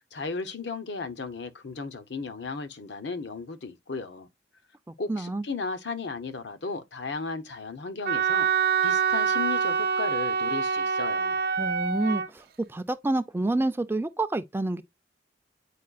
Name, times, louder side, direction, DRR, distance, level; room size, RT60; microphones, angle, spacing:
voice 1, 0.1-4.3 5.0-8.5 8.8-11.4, left 4 dB, 70° left, 0.9 m, -35 dB
voice 2, 5.1-5.4 11.6-14.8, right 2 dB, 15° right, 0.3 m, -28 dB
Wind instrument woodwind instrument, 8.1-12.3, right 6 dB, 55° right, 0.6 m, -25 dB
8.4 x 4.6 x 2.4 m
head